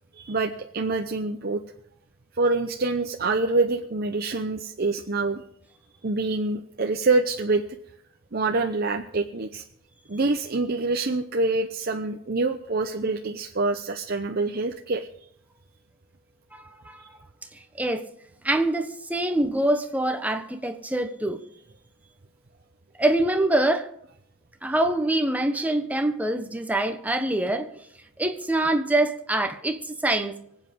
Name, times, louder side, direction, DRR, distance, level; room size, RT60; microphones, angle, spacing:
voice 1, 0.2-1.6 2.4-5.4 6.0-7.6 8.3-9.6 10.1-15.1, right 3 dB, 50° right, 0.8 m, -26 dB
voice 2, 16.5-17.0 17.7-18.0 18.4-21.4 23.0-23.9 24.6-27.7 28.2-30.4, right 1 dB, 10° right, 1.1 m, -25 dB
24.5 x 8.3 x 5.3 m
head